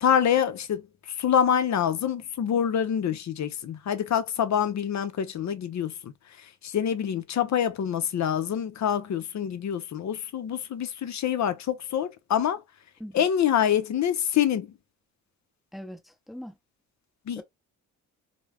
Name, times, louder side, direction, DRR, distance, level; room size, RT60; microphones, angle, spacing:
voice 1, 0.0-0.8 1.2-6.1 6.6-12.6 13.1-14.7 17.3-17.4, left 9 dB, 50° left, 0.6 m, -26 dB
voice 2, 15.7-16.5 17.4-17.5, equal, ahead, 0.8 m, -41 dB
2.3 x 2.1 x 3.3 m
supercardioid pair, 55°, 37 cm